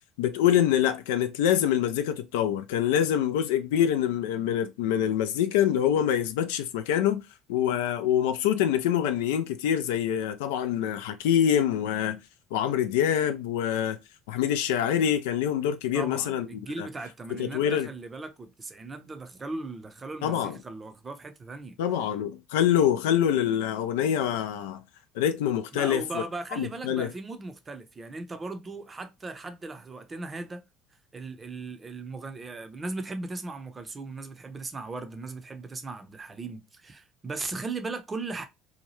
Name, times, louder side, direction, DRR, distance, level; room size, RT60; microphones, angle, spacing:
voice 1, 0.2-7.2 7.5-12.2 12.5-14.0 14.3-16.5 16.8-16.9 17.4-17.9 20.2-20.6 21.8-24.8 25.2-26.2 26.6-27.1, left 10 dB, 80° left, 0.4 m, -25 dB
voice 2, 15.9-21.8 25.7-30.6 31.1-38.5, right 3 dB, 30° right, 0.6 m, -38 dB
2.8 x 2.2 x 3.0 m
hypercardioid pair, 65°, 0 cm